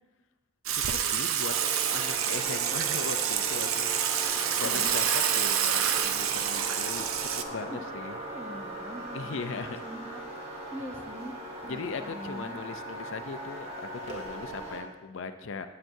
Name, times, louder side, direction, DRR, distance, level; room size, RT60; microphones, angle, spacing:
voice 1, 0.7-3.9 4.3-5.0 5.3-8.2 9.1-9.8 11.7-15.7, left 4 dB, 65° left, 8 dB, 0.5 m, -39 dB
Water / Water tap faucet / Sink (filling or washing), 0.7-7.4, right 9 dB, 80° right, 0.6 m, -28 dB
sound 1, 1.5-14.8, right 1 dB, 30° right, 1.6 m, -39 dB
voice 2, 8.1-10.2 10.7-11.3 11.6-12.6, equal, 10° right, 3 dB, 0.7 m, -42 dB
13.5 x 7.6 x 2.7 m, 1.2 s
head